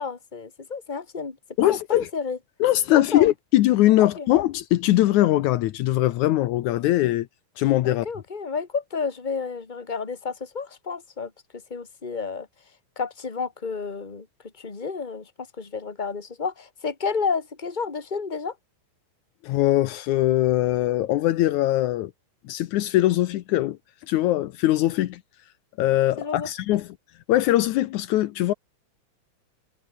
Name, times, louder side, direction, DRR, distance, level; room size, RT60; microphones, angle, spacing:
voice 1, 0.0-1.4 1.6-2.4 2.9-3.3 4.0-4.3 7.8-11.3 11.7-12.5 13.0-14.3 14.6-15.3 15.6-18.6 26.2-26.5, left 5 dB, 15° left, 2.3 m, -30 dB
voice 2, 1.6-2.1 2.6-7.3 7.6-8.1 19.4-22.1 22.5-23.8 24.1-25.2 25.8-26.9 27.3-28.5, left 15 dB, 75° left, 2.2 m, -21 dB
omnidirectional pair, 3.5 m